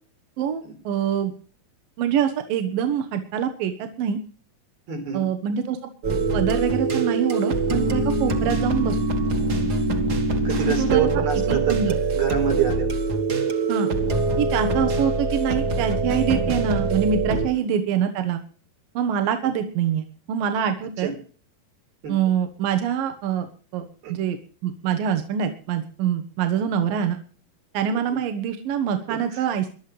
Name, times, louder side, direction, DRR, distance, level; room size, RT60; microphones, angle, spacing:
voice 1, 0.4-1.3 2.0-4.2 5.1-5.9 6.3-9.0 10.6-11.1 11.5-12.0 13.7-13.9 14.4-18.4 18.9-21.1 22.1-24.4 24.6-27.2 27.7-29.7, right 8 dB, 75° right, 6 dB, 2.8 m, -25 dB
voice 2, 4.9-5.2 8.4-8.5 10.4-12.9 16.5-16.6 21.0-21.1 22.0-22.2 24.0-24.1 28.1-28.2 29.1-29.2, right 8 dB, 90° right, 3 dB, 6.1 m, -26 dB
sound 1, 6.0-17.5, right 3 dB, 45° right, 1.3 m, -23 dB
21.5 x 12.0 x 3.3 m, 0.40 s
omnidirectional pair, 4.2 m